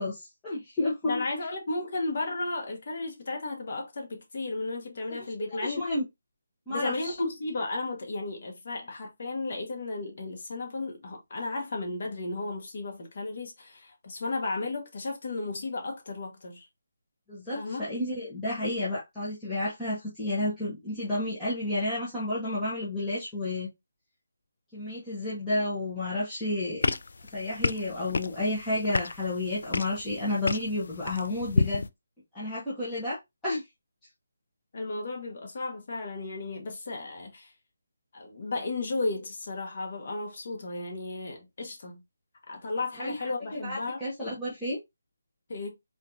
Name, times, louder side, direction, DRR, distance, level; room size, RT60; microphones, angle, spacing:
voice 1, 0.0-1.2 5.6-6.0 6.7-7.1 17.3-23.7 24.7-26.9 27.3-31.8 32.3-33.2 33.4-33.6 43.0-43.1 43.5-44.8, left 1 dB, 5° left, 1.2 m, -31 dB
voice 2, 1.0-5.8 6.7-16.7 17.5-17.8 34.7-37.5 38.1-42.0 42.5-44.0 45.5-45.7, left 2 dB, 50° left, 1.3 m, -34 dB
sound 1, 26.8-31.9, left 3 dB, 65° left, 0.3 m, -31 dB
4.1 x 3.1 x 2.5 m
hypercardioid pair, 165°, 0 cm